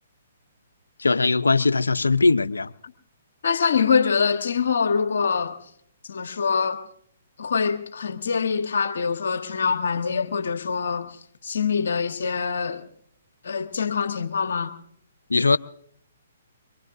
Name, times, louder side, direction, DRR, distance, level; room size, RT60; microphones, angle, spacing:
voice 1, 1.0-2.7 15.3-15.6, left 3 dB, 85° left, 0.6 m, -20 dB
voice 2, 3.4-5.6 6.1-6.8 7.4-12.8 13.4-14.7, left 6 dB, 65° left, 1.2 m, -24 dB
23.5 x 23.0 x 2.6 m
figure-of-eight pair, 130°, 0 cm